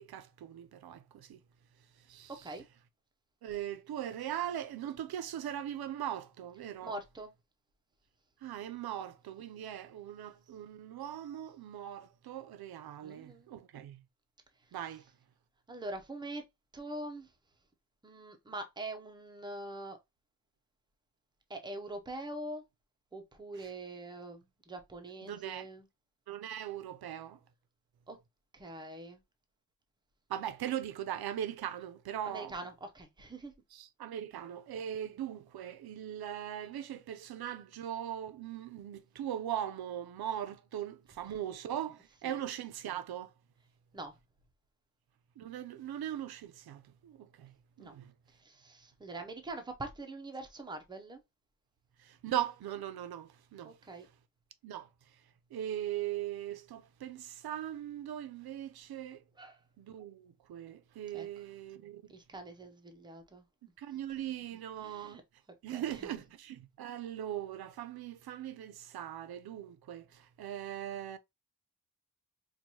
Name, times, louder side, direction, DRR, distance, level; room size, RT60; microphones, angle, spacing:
voice 1, 0.0-1.4 2.1-2.3 3.4-7.0 8.4-14.0 14.7-15.0 25.2-25.7 26.3-27.4 30.3-32.5 33.7-43.3 45.4-47.5 47.8-48.1 52.0-53.7 54.6-54.9 55.5-59.2 59.8-62.0 63.8-65.2 65.6-71.2, right 11 dB, 85° right, 0.6 m, -40 dB
voice 2, 6.8-7.3 13.0-13.5 15.7-16.4 16.7-17.3 18.0-20.0 21.5-22.6 23.1-25.9 28.1-28.2 28.5-29.2 32.2-33.5 41.3-41.4 42.2-42.4 43.9-44.1 47.8-47.9 48.4-51.2 53.6-54.1 59.4-59.6 61.1-61.3 62.1-63.4 64.8-65.2 65.7-66.1, right 2 dB, 10° right, 0.5 m, -43 dB
4.5 x 2.3 x 2.7 m
wide cardioid pair, 175°, 36 cm